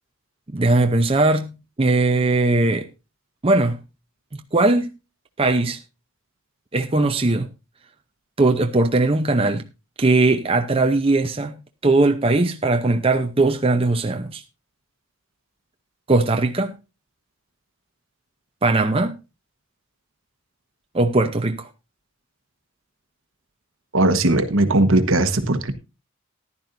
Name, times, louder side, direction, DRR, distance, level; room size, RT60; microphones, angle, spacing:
voice 1, 0.5-2.9 3.4-3.8 4.3-4.9 5.4-5.8 6.7-7.5 8.4-9.6 10.0-11.5 11.8-14.4 16.1-16.7 18.6-19.2 20.9-21.7, right 2 dB, 25° right, 0.7 m, -19 dB
voice 2, 23.9-25.7, right 2 dB, 65° right, 1.2 m, -18 dB
14.5 x 11.0 x 2.6 m
head